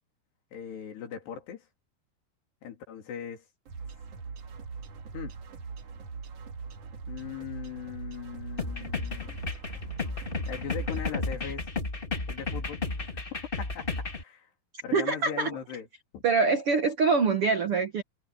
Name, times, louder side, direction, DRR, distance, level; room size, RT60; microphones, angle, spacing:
voice 1, 0.5-1.7 2.6-3.4 5.1-5.3 7.1-9.4 10.5-11.7 12.3-13.1 13.6-14.5 14.8-15.9 16.1-16.2, left 8 dB, 80° left, 5.4 m, -39 dB
sound 1, 3.7-11.2, right 5 dB, 50° right, 2.3 m, -41 dB
sound 2, 8.6-14.2, left 3 dB, 50° left, 0.6 m, -33 dB
voice 2, 14.9-15.5 16.2-18.0, right 4 dB, 85° right, 1.2 m, -24 dB
omnidirectional pair, 4.7 m